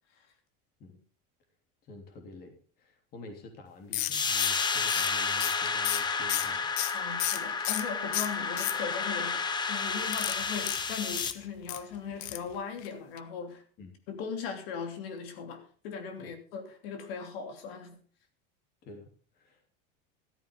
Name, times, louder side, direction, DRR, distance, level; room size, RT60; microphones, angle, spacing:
voice 1, 1.8-6.7 13.8-13.9 16.2-16.3 18.8-19.1 19.4-19.7, left 2 dB, 30° left, 3.2 m, -48 dB
sound 1, 3.9-7.9 8.1-9.1 10.1-11.8 12.2-12.5 12.8-12.9 13.2-13.3, left 16 dB, 60° left, 0.9 m, -33 dB
sound 2, 4.1-11.3, left 5 dB, 15° left, 0.8 m, -31 dB
voice 2, 6.9-13.6 14.1-18.0, left 6 dB, 80° left, 3.0 m, -39 dB
14.0 x 13.5 x 3.7 m
cardioid pair, 170°, 30 cm